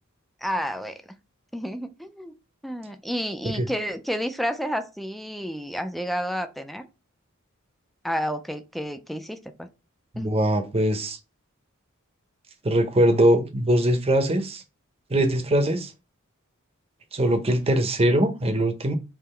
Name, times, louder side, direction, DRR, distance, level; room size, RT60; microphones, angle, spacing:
voice 1, 0.4-1.0 1.5-2.3 2.6-6.8 8.0-9.7 10.2-10.4, equal, ahead, 0.4 m, -30 dB
voice 2, 10.1-11.2 12.6-14.6 15.1-15.9 17.1-18.9, right 1 dB, 30° right, 0.7 m, -22 dB
3.7 x 2.9 x 4.3 m
head